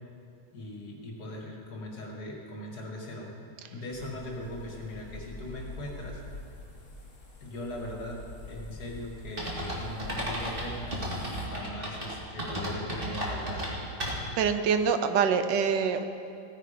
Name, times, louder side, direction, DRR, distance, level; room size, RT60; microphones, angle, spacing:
voice 1, 0.5-6.2 7.4-13.6, left 1 dB, 60° left, -1 dB, 2.4 m, -40 dB
sound 1, 3.9-11.5, left 2 dB, 45° left, 1.9 m, -46 dB
sound 2, 9.4-14.5, equal, 30° right, 2.3 m, -34 dB
voice 2, 14.4-16.0, right 6 dB, 80° right, 8 dB, 1.4 m, -25 dB
16.5 x 9.4 x 5.1 m, 2.6 s
omnidirectional pair, 2.0 m